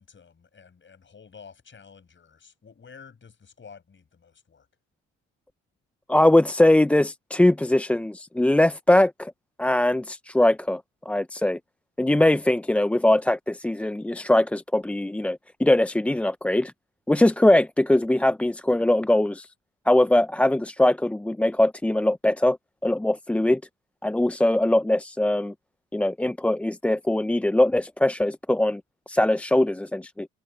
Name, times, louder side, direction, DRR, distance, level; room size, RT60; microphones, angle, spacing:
voice 1, 0.0-4.7, left 6 dB, 40° left, 6.3 m, -50 dB
voice 2, 6.1-9.3 9.6-11.6 12.0-16.7 17.1-19.5 19.9-22.6 22.8-23.6 24.0-25.5 25.9-28.8 29.1-30.3, left 1 dB, 5° left, 0.3 m, -21 dB
cardioid pair, 90°, 30 cm